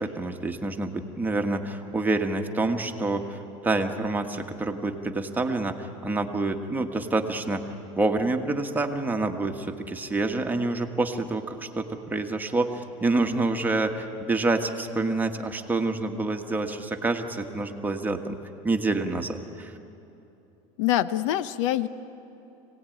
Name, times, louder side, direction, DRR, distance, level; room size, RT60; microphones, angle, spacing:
voice 1, 0.0-7.6 8.0-18.4 18.6-19.7, right 2 dB, 10° right, 4 dB, 1.5 m, -27 dB
voice 2, 20.8-21.9, left 13 dB, 80° left, 15 dB, 0.8 m, -24 dB
25.0 x 18.0 x 9.3 m, 2.9 s
supercardioid pair, 125°, 16 cm